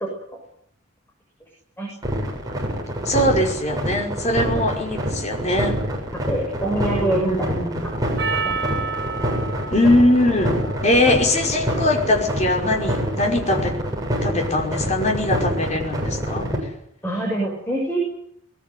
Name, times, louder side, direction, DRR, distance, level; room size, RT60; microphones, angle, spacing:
sound 1, 2.0-16.6, equal, 20° right, 7.7 m, -26 dB
voice 1, 3.1-5.8 7.0-7.8 9.7-13.8 14.2-16.5, left 1 dB, 35° left, 2 dB, 5.4 m, -21 dB
voice 2, 6.3-7.5 7.8-7.9 8.4-8.6 17.0-18.0, right 1 dB, 10° left, 0 dB, 6.9 m, -24 dB
Percussion, 8.2-12.8, right 4 dB, 55° right, 6.8 m, -32 dB
21.0 x 20.5 x 9.4 m, 0.71 s
head